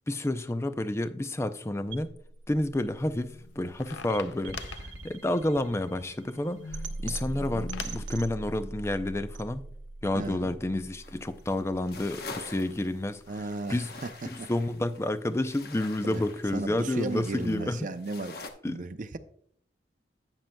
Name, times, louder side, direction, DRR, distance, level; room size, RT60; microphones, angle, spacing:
voice 1, 0.1-2.1 2.5-9.6 10.0-13.9 14.2-17.9 18.6-18.8, left 1 dB, 15° left, 0.4 m, -30 dB
sound 1, 1.9-13.9, right 2 dB, 85° right, 0.8 m, -42 dB
sound 2, 3.0-8.1, left 6 dB, 75° left, 0.5 m, -44 dB
voice 2, 10.1-10.5 13.3-14.5 16.0-16.2 16.5-18.3 18.7-19.2, right 2 dB, 45° right, 0.5 m, -35 dB
sound 3, 11.0-18.5, left 3 dB, 55° left, 0.9 m, -46 dB
11.0 x 9.0 x 2.2 m
head